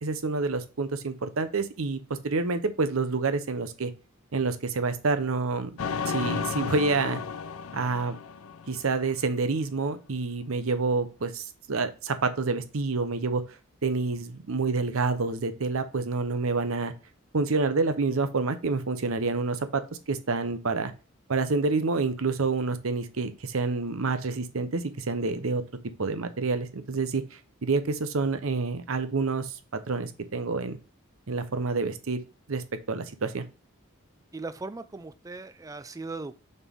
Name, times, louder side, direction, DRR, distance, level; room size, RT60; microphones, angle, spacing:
voice 1, 0.0-3.9 4.3-5.8 6.1-7.2 7.7-8.1 8.7-11.4 11.7-13.4 13.8-16.9 17.3-19.8 20.1-20.9 21.3-25.6 26.0-27.2 27.6-30.8 31.3-32.2 32.5-33.4, right 4 dB, 70° right, 10 dB, 0.8 m, -28 dB
sound 1, 5.8-9.2, left 6 dB, 75° left, 0.6 m, -33 dB
voice 2, 34.3-36.3, right 3 dB, 15° right, 13 dB, 0.3 m, -38 dB
6.9 x 4.4 x 3.6 m, 0.34 s
head